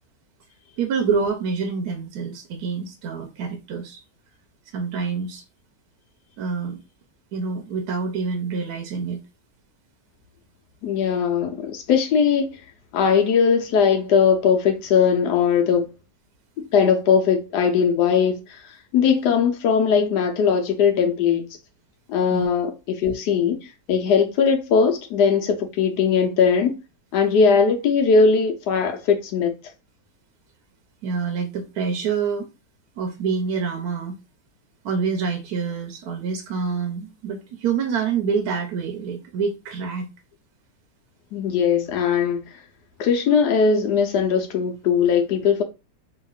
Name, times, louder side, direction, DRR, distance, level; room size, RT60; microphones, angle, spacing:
voice 1, 0.8-4.0 4.7-5.4 6.4-6.8 7.3-9.2 22.3-22.5 31.0-32.5 33.0-34.2 34.8-40.1, right 5 dB, 75° right, 1.1 m, -26 dB
voice 2, 10.8-12.5 12.9-15.9 16.7-18.4 18.9-21.5 22.1-26.8 27.1-29.5 41.3-42.4 43.0-45.6, left 6 dB, 80° left, 1.3 m, -19 dB
3.0 x 2.8 x 2.3 m
omnidirectional pair, 1.7 m